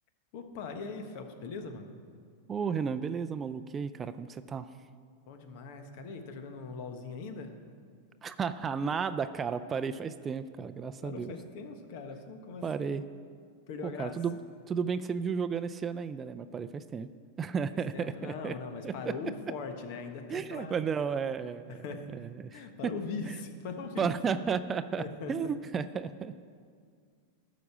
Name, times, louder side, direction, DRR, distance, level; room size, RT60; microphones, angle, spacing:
voice 1, 0.3-1.9 5.3-7.5 11.0-12.9 13.7-14.2 17.9-20.8 21.7-22.1 22.5-24.1 25.0-25.3, left 4 dB, 60° left, 6 dB, 1.2 m, -40 dB
voice 2, 2.5-4.7 8.2-11.3 12.6-13.0 13.8-14.4 14.7-17.1 17.4-18.6 18.8-19.2 20.3-21.8 22.1-22.9 24.0-26.3, right 6 dB, 25° right, 11 dB, 0.4 m, -33 dB
12.5 x 5.1 x 7.2 m, 2.1 s
hypercardioid pair, 110°, 0 cm